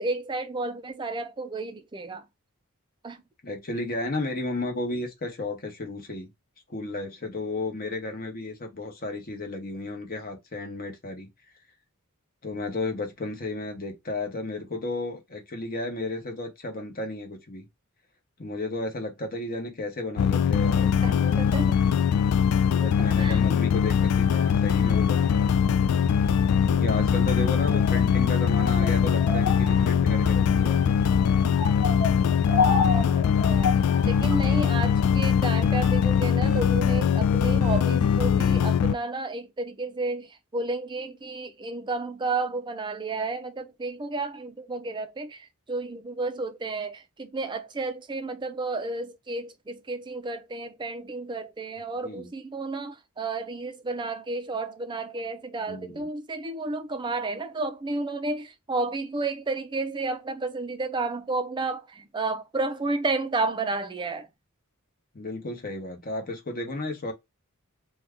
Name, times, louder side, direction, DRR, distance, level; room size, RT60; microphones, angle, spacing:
voice 1, 0.0-2.2 3.0-3.2 21.0-21.7 23.2-23.4 26.8-27.1 32.6-33.8 34.0-64.3, right 3 dB, 20° right, 0.4 m, -32 dB
voice 2, 3.4-6.3 6.7-11.3 12.4-17.7 18.4-21.4 22.6-25.6 26.7-30.8 52.0-52.3 55.7-56.1 65.1-67.1, left 2 dB, 45° left, 1.0 m, -33 dB
sound 1, 20.2-38.9, left 8 dB, 85° left, 0.3 m, -22 dB
sound 2, 24.9-35.2, left 4 dB, 65° left, 1.2 m, -32 dB
2.7 x 2.3 x 3.5 m
head